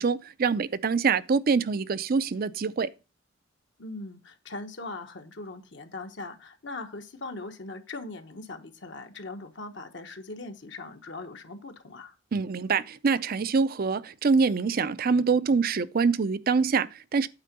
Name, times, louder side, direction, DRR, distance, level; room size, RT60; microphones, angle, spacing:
voice 1, 0.0-2.9 12.3-17.3, right 5 dB, 50° right, 0.5 m, -25 dB
voice 2, 3.8-12.1, left 2 dB, 65° left, 1.1 m, -40 dB
8.8 x 3.8 x 6.6 m
head